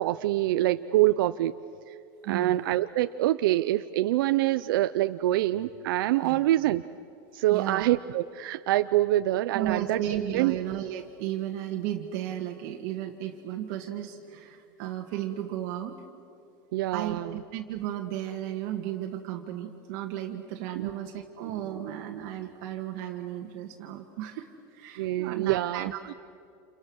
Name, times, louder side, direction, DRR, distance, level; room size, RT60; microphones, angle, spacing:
voice 1, 0.0-1.5 1.9-2.0 2.3-6.8 7.3-10.0 10.3-10.5 16.7-17.3 20.8-20.9 25.0-26.1, right 15 dB, 75° right, 11 dB, 0.6 m, -25 dB
voice 2, 2.2-2.6 6.2-6.4 7.5-7.8 9.5-16.0 16.9-26.1, right 11 dB, 55° right, 2 dB, 1.8 m, -34 dB
29.5 x 28.5 x 6.4 m, 2.6 s
supercardioid pair, 155°, 11 cm